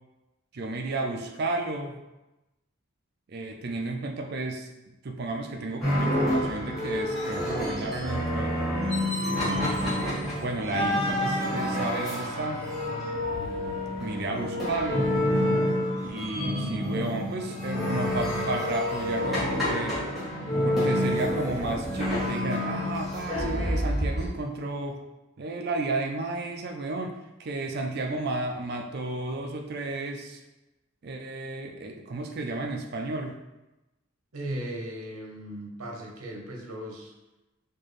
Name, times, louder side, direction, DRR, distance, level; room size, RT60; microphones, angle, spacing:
voice 1, 0.5-2.0 3.3-8.6 9.2-10.0 10.3-12.6 14.0-15.1 16.0-20.0 20.6-25.0 25.4-30.4 31.0-33.4, right 2 dB, 45° right, 3 dB, 0.4 m, -33 dB
sound 1, 5.8-24.3, left 1 dB, ahead, 1.1 m, -28 dB
voice 2, 34.3-37.1, right 1 dB, 80° right, 0 dB, 0.8 m, -37 dB
4.4 x 2.5 x 3.1 m, 1.0 s
head